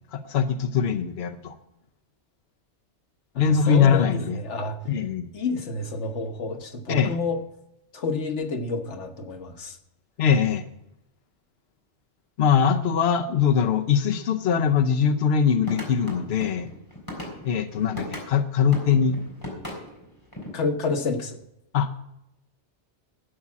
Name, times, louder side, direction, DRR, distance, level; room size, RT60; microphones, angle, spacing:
voice 1, 0.1-1.5 3.4-4.4 4.8-5.3 6.9-7.2 10.2-10.6 12.4-16.7 17.4-19.2 21.7-21.9, left 7 dB, 65° left, 5 dB, 1.0 m, -22 dB
voice 2, 3.5-4.8 5.3-7.4 7.9-9.7 20.5-21.4, left 3 dB, 90° left, 6 dB, 1.5 m, -29 dB
sound 1, 15.6-18.3 18.7-20.6, left 1 dB, 20° left, 3.8 m, -37 dB
12.5 x 8.5 x 7.3 m, 0.85 s
omnidirectional pair, 1.2 m